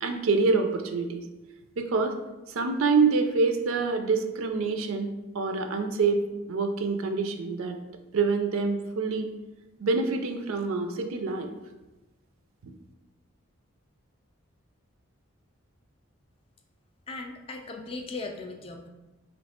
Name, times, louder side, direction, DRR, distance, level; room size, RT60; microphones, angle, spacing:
voice 1, 0.0-1.2 1.8-2.2 2.5-5.1 5.3-6.2 6.5-7.8 8.1-9.3 9.8-11.5 12.6-12.7, right 4 dB, 75° right, 6 dB, 0.4 m, -26 dB
voice 2, 17.1-18.9, left 3 dB, 25° left, 3 dB, 0.3 m, -38 dB
3.2 x 2.7 x 4.2 m, 1.1 s
head